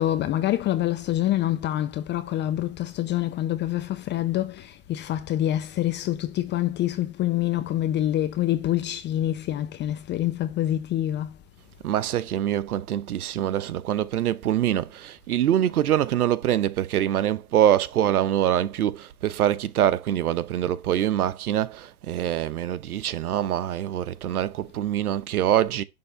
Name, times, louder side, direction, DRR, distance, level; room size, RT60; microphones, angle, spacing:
voice 1, 0.0-11.4, left 13 dB, 25° left, 0.8 m, -26 dB
voice 2, 11.8-25.8, right 11 dB, 75° right, 1.0 m, -24 dB
11.0 x 3.7 x 6.7 m
hypercardioid pair, 115°, 44 cm